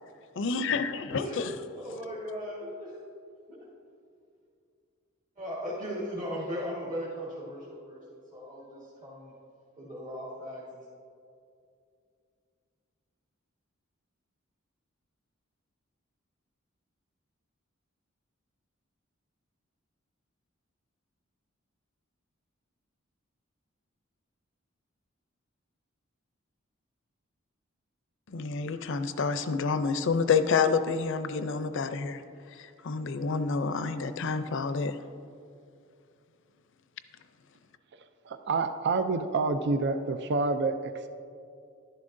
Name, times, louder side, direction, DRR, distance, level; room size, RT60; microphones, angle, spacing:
voice 1, 0.4-1.4 28.3-32.2 32.8-34.9, left 5 dB, 65° left, 11 dB, 0.5 m, -28 dB
voice 2, 1.1-3.0 3.5-3.6 5.4-9.3 9.8-10.6, equal, 40° right, -7 dB, 1.7 m, -38 dB
voice 3, 38.2-41.1, right 3 dB, 55° right, 9 dB, 0.4 m, -28 dB
12.0 x 10.5 x 2.6 m, 2.4 s
head